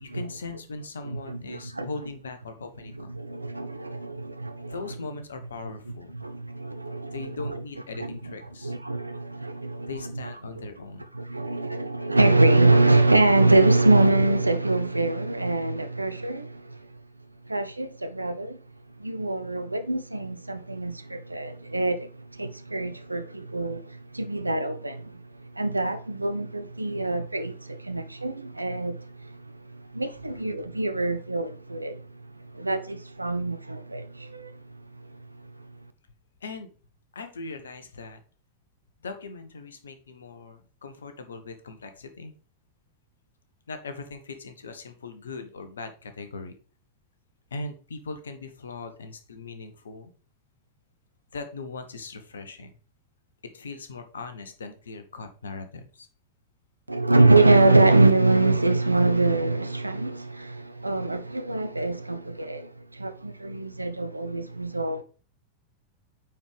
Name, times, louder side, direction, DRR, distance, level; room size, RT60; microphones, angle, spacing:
voice 1, 0.0-3.1 4.7-6.2 7.1-8.7 9.9-11.1 30.3-30.7 36.4-36.7 37.1-38.2 39.0-42.3 43.7-46.5 47.5-50.1 51.3-52.8 53.5-56.1, left 3 dB, 70° left, 1.1 m, -39 dB
voice 2, 1.0-1.9 3.2-4.7 6.1-7.1 7.4-7.5 8.0-8.1 8.6-9.9 11.1-16.8 17.5-18.6 19.0-23.8 24.1-25.2 25.6-29.3 29.9-32.0 32.5-34.5 56.9-65.0, right 2 dB, 85° right, 0.6 m, -24 dB
8.7 x 4.5 x 3.4 m
figure-of-eight pair, 90°, 0 cm